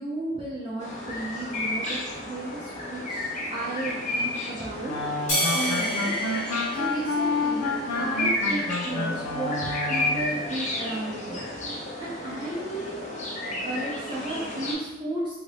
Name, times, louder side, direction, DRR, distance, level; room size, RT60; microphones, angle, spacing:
voice 1, 0.0-4.9 5.5-6.1 6.7-11.5 12.0-12.9 13.6-15.4, right 1 dB, 20° right, -8 dB, 0.5 m, -34 dB
sound 1, 0.8-14.7, left 1 dB, 35° left, 0.5 m, -32 dB
sound 2, 4.9-10.4, left 3 dB, 85° left, 0.4 m, -29 dB
sound 3, 5.3-7.9, equal, 65° left, 1.0 m, -30 dB
2.8 x 2.6 x 3.2 m, 1.1 s
head